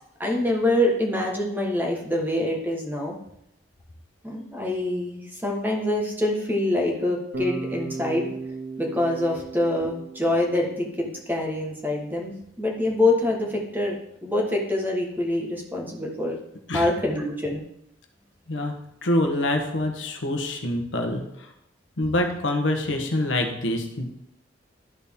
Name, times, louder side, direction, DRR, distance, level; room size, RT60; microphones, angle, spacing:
voice 1, 0.2-3.2 4.2-8.3 8.8-14.0 14.2-16.4 16.7-17.6, left 1 dB, 10° right, -1 dB, 1.3 m, -25 dB
Bass guitar, 7.3-11.4, right 3 dB, 65° right, 1.8 m, -36 dB
voice 2, 19.0-21.5 22.0-24.1, left 1 dB, 80° left, 4 dB, 1.1 m, -25 dB
12.0 x 4.3 x 3.6 m, 0.78 s
head